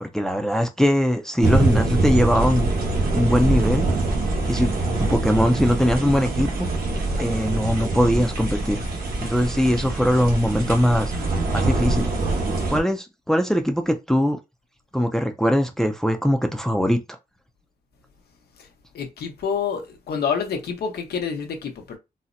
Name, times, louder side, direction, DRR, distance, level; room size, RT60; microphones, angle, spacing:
voice 1, 0.0-2.7 3.1-3.9 4.5-4.7 5.0-6.7 7.2-8.8 9.3-11.1 11.5-12.1 12.7-14.4 14.9-17.2, equal, 5° left, 0.3 m, -21 dB
sound 1, 1.4-12.8, right 2 dB, 65° right, 1.0 m, -24 dB
voice 2, 18.9-22.0, left 6 dB, 90° left, 0.9 m, -28 dB
4.1 x 2.0 x 2.5 m
wide cardioid pair, 180°, 16 cm